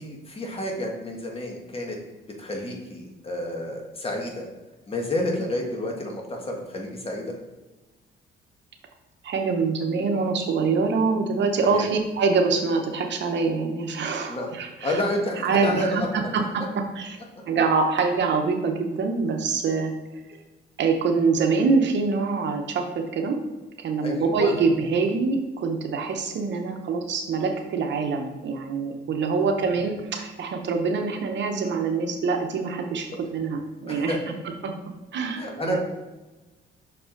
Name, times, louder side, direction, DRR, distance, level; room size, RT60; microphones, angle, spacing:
voice 1, 0.0-2.0 2.4-4.5 4.9-7.2 11.7-11.9 14.3-16.1 24.0-24.6 29.3-29.5 33.9-34.3 35.3-35.8, left 1 dB, 30° left, 0 dB, 1.5 m, -30 dB
voice 2, 9.2-15.0 15.4-16.6 16.9-17.2 17.5-19.9 20.8-23.4 23.8-34.2 34.6-34.7 35.1-35.8, right 4 dB, 65° right, 4 dB, 0.9 m, -25 dB
6.0 x 4.6 x 3.9 m, 1.1 s
cardioid pair, 90°, 20 cm